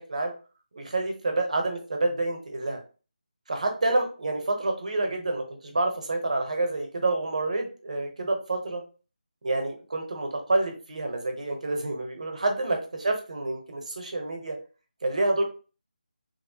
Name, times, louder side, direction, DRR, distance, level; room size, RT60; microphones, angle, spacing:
voice 1, 0.7-2.8 3.5-8.8 9.4-14.6 15.0-15.4, right 2 dB, 50° right, 3 dB, 0.8 m, -28 dB
3.0 x 2.2 x 2.7 m, 0.34 s
figure-of-eight pair, 175°, 5 cm